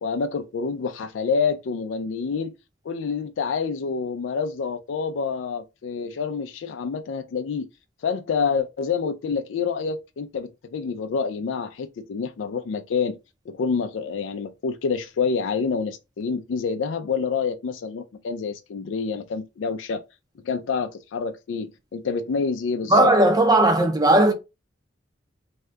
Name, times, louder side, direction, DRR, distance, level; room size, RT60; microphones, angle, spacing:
voice 1, 0.0-2.6 2.8-7.7 8.0-13.2 13.5-20.0 20.4-23.1, left 5 dB, 80° left, 0.4 m, -27 dB
voice 2, 22.9-24.3, right 1 dB, 20° right, 0.5 m, -17 dB
2.7 x 2.3 x 3.2 m
head